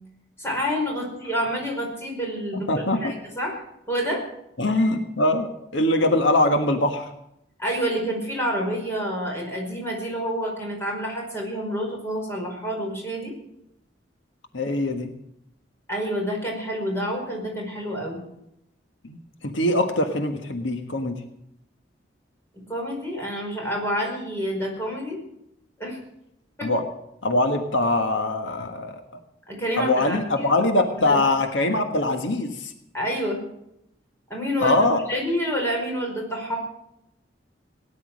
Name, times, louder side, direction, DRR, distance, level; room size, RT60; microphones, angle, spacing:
voice 1, 0.4-3.6 3.9-4.2 7.6-13.3 15.9-18.2 22.7-25.2 25.8-26.0 26.6-26.7 29.5-30.5 31.0-31.2 32.9-33.4 34.3-34.8 35.1-36.6, equal, 15° left, -1 dB, 5.2 m, -28 dB
voice 2, 2.5-3.1 4.6-7.1 14.5-15.1 19.0-21.2 26.6-26.8 27.2-29.0 29.8-32.7 34.6-35.0, left 2 dB, 80° left, 5 dB, 1.5 m, -22 dB
18.0 x 10.5 x 6.4 m, 0.80 s
head